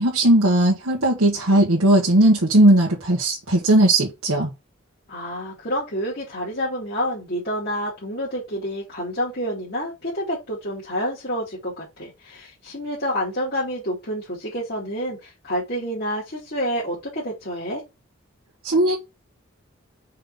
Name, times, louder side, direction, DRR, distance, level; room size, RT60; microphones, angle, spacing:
voice 1, 0.0-4.5 18.6-19.0, right 1 dB, 80° right, 1.5 m, -17 dB
voice 2, 5.1-17.8, equal, 50° left, 2.6 m, -28 dB
5.6 x 3.9 x 5.3 m
head